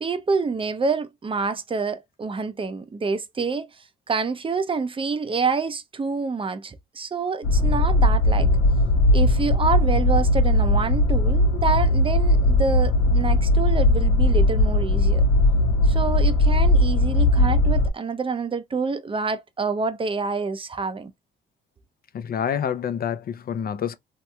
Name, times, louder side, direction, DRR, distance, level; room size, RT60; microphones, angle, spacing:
voice 1, 0.0-8.5 9.1-15.2 15.8-21.1, right 4 dB, 25° right, 0.5 m, -27 dB
sound 1, 7.4-17.9, left 1 dB, 85° left, 1.0 m, -19 dB
voice 2, 22.1-24.0, left 8 dB, 50° left, 0.5 m, -27 dB
3.1 x 2.9 x 2.2 m
cardioid pair, 90°, 20 cm